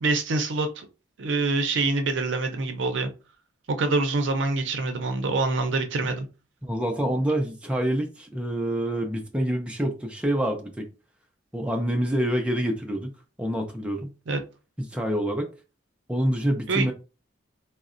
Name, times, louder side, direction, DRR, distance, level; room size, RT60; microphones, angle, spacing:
voice 1, 0.0-0.8 1.2-3.1 3.7-6.3 14.3-14.4 16.7-16.9, right 3 dB, 70° right, 0.5 m, -25 dB
voice 2, 6.6-10.9 11.5-13.1 13.4-14.1 14.9-15.5 16.1-16.9, right 1 dB, 5° right, 0.4 m, -26 dB
3.8 x 2.0 x 2.5 m
head